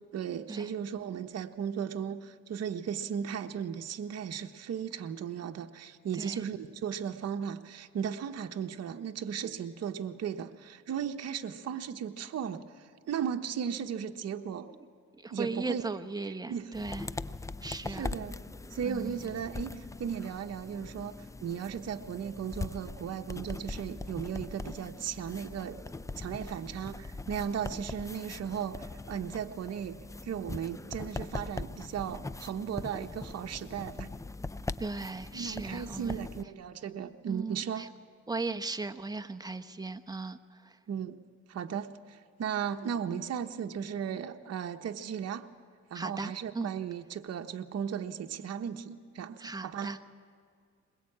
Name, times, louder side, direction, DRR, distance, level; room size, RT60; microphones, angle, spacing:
voice 1, 0.1-14.7 15.3-15.8 16.5-16.7 17.9-18.4 18.7-21.2 21.4-25.8 26.2-30.0 30.2-34.1 35.3-37.8 40.9-41.2 41.5-45.4 45.9-49.9, right 8 dB, 55° right, 5 dB, 1.1 m, -36 dB
voice 2, 15.2-17.1 17.6-18.1 18.8-19.3 34.8-36.2 37.3-37.9 38.3-40.8 45.9-46.7 49.4-50.0, right 3 dB, 15° right, 9 dB, 1.1 m, -37 dB
sound 1, 16.7-36.4, left 3 dB, 10° left, 0.5 m, -41 dB
21.5 x 21.5 x 8.7 m, 2.2 s
cardioid pair, 90°, 30 cm